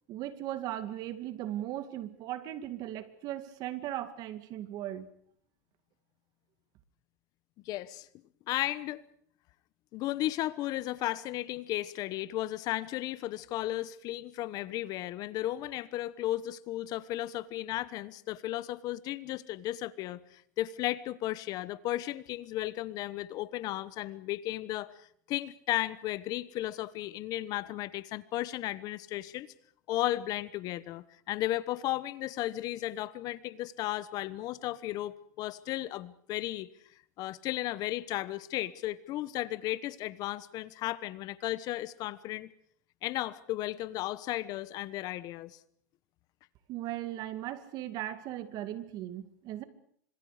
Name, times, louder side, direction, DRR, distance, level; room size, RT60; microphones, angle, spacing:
voice 1, 0.1-5.1 46.7-49.6, right 13 dB, 45° right, 2.2 m, -38 dB
voice 2, 7.6-8.1 8.5-9.0 9.9-29.5 29.9-36.7 37.2-42.5 43.0-45.6, left 15 dB, 45° left, 1.1 m, -34 dB
30.0 x 26.0 x 5.1 m
supercardioid pair, 135°, 9 cm